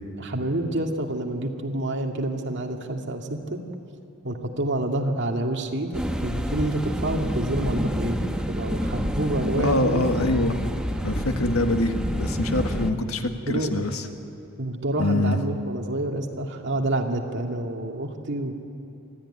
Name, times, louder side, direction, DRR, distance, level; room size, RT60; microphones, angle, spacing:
voice 1, 0.2-3.6 4.2-10.2 12.0-12.1 13.5-13.8 14.6-18.5, right 1 dB, 55° right, 2 dB, 2.1 m, -28 dB
sound 1, 5.9-12.9, equal, 5° right, 1.0 m, -28 dB
voice 2, 9.6-10.6 11.0-14.1 15.0-15.4, left 2 dB, 80° left, 6 dB, 1.7 m, -24 dB
25.0 x 15.5 x 10.0 m, 2.7 s
head